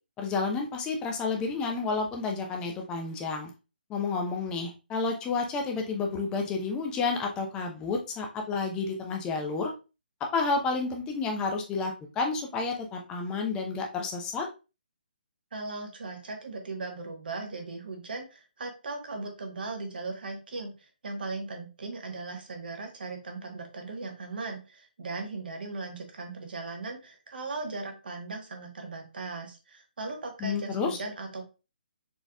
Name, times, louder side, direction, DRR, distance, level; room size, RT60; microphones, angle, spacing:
voice 1, 0.2-3.5 3.9-9.7 10.3-14.5 30.4-31.0, left 4 dB, 15° left, 2 dB, 0.7 m, -30 dB
voice 2, 15.5-31.4, right 3 dB, 65° right, 3 dB, 1.3 m, -38 dB
4.3 x 3.4 x 2.3 m, 0.30 s
hypercardioid pair, 150°, 5 cm